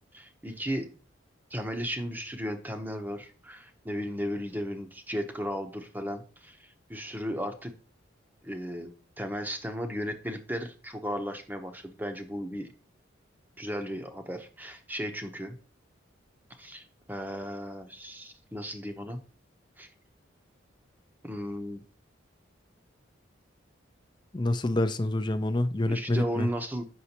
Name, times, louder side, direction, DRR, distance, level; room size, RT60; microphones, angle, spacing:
voice 1, 0.1-0.9 1.5-7.7 8.4-8.9 9.2-12.7 13.6-15.6 16.6-19.2 19.8-19.9 21.2-21.8 25.9-26.8, equal, 10° right, 0.8 m, -35 dB
voice 2, 24.3-26.5, left 1 dB, 20° left, 0.5 m, -27 dB
8.0 x 6.2 x 2.9 m
head